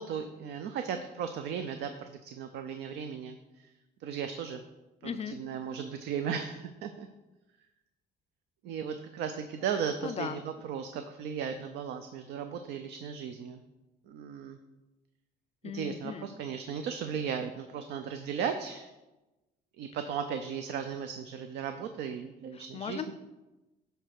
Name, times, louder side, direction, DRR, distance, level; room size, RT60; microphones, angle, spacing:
voice 1, 0.0-3.4 4.0-4.6 5.4-7.1 8.6-10.4 10.7-13.6 14.1-14.6 15.7-18.9 19.8-23.1, right 7 dB, 80° right, 7 dB, 0.5 m, -36 dB
voice 2, 5.0-5.4 10.0-10.4 15.6-16.3 22.5-23.1, left 7 dB, 40° left, 12 dB, 0.4 m, -37 dB
9.2 x 3.4 x 6.5 m, 1.1 s
cardioid pair, 110°, 17 cm